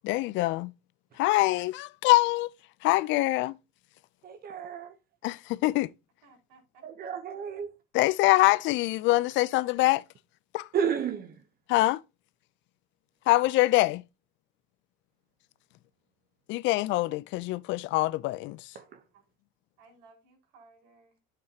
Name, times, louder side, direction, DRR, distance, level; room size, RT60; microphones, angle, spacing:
voice 1, 0.0-0.7 1.2-2.5 2.8-3.6 5.2-5.9 7.9-10.0 10.5-10.7 11.7-12.0 13.3-14.0 16.5-18.6, left 18 dB, 65° left, 0.5 m, -24 dB
voice 2, 4.2-4.9 6.8-7.7 10.7-11.4 18.7-19.0, right 7 dB, 45° right, 0.9 m, -32 dB
voice 3, 6.2-6.8 7.3-7.4 19.1-19.3 19.8-21.1, right 3 dB, 90° right, 5.1 m, -58 dB
9.5 x 7.9 x 2.8 m
supercardioid pair, 105°, 21 cm